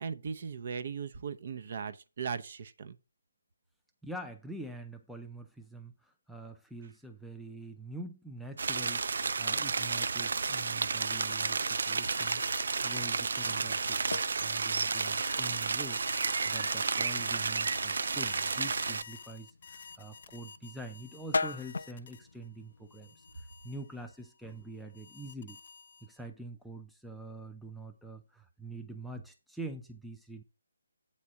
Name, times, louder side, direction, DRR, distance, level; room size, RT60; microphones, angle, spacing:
voice 1, 0.0-3.0, right 6 dB, 45° right, 0.8 m, -38 dB
voice 2, 4.0-16.0 16.4-25.6 26.0-30.4, right 1 dB, ahead, 0.5 m, -45 dB
sound 1, 8.6-19.0, right 4 dB, 60° right, 0.3 m, -31 dB
sound 2, 11.0-22.5 22.9-26.3, left 5 dB, 40° left, 0.8 m, -49 dB
sound 3, 12.7-23.4, left 3 dB, 75° left, 0.4 m, -42 dB
8.5 x 4.2 x 6.1 m
hypercardioid pair, 165°, 0 cm